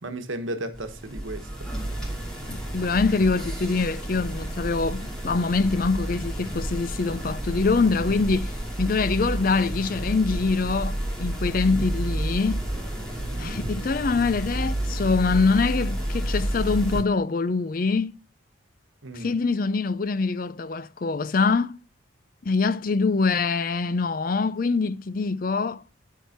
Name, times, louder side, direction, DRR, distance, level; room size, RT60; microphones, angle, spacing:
voice 1, 0.0-1.7 13.2-13.6 19.0-19.3, right 1 dB, 85° right, 1.4 m, -35 dB
sound 1, 0.7-17.0, right 1 dB, 5° left, 2.7 m, -30 dB
voice 2, 2.5-12.7 13.4-18.1 19.1-21.8 22.4-25.8, left 4 dB, 45° left, 0.5 m, -24 dB
11.0 x 4.8 x 5.9 m
head